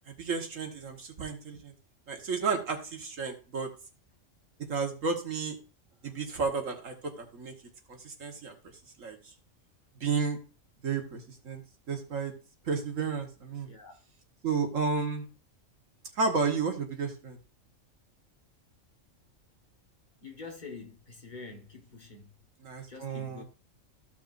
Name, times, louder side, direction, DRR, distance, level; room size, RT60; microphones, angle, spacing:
voice 1, 0.1-1.7 2.1-3.7 4.7-5.6 6.0-7.5 7.9-8.6 9.0-9.2 10.0-10.4 10.8-11.6 11.9-12.3 12.7-13.7 14.4-15.3 16.2-17.4 22.6-23.4, right 5 dB, 75° right, 1.9 m, -32 dB
voice 2, 20.2-22.3 22.9-23.4, left 4 dB, 35° left, 1.5 m, -46 dB
14.5 x 5.9 x 2.6 m
omnidirectional pair, 1.3 m